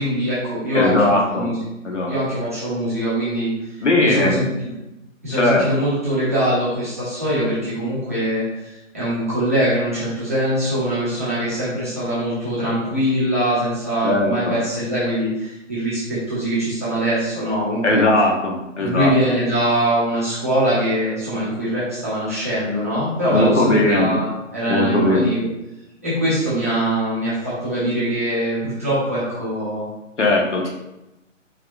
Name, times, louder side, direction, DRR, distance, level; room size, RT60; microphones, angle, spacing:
voice 1, 0.0-1.6 2.1-3.5 3.8-4.7 5.2-18.0 18.8-24.3 24.5-25.4 26.0-29.9, right 1 dB, 10° right, -13 dB, 0.8 m, -22 dB
voice 2, 0.7-1.5 1.8-2.1 3.8-4.4 5.4-5.6 14.0-14.5 17.8-19.1 23.3-24.1 24.7-25.3 30.2-30.7, left 2 dB, 60° left, -1 dB, 1.3 m, -18 dB
4.7 x 4.6 x 2.5 m, 0.94 s
hypercardioid pair, 170°, 40 cm